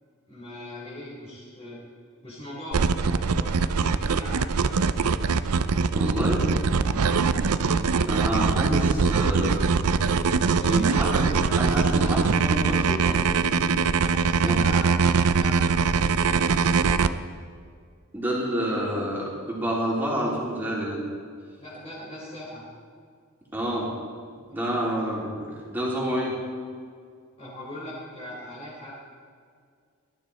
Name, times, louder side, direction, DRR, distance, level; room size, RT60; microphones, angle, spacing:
voice 1, 0.3-1.8 2.2-5.2 6.9-7.3 10.5-11.5 11.9-12.1 13.9-14.9 15.3-17.0 21.6-22.7 27.4-29.0, equal, 25° left, -10 dB, 4.0 m, -40 dB
sound 1, 2.7-17.1, right 5 dB, 80° right, 0.6 m, -22 dB
voice 2, 5.9-6.4 8.0-9.7 10.6-11.3 11.6-13.6 14.4-14.6 18.1-21.0 23.5-23.9 24.5-26.4, right 1 dB, 10° right, -5 dB, 3.6 m, -28 dB
18.5 x 12.5 x 4.2 m, 2.1 s
head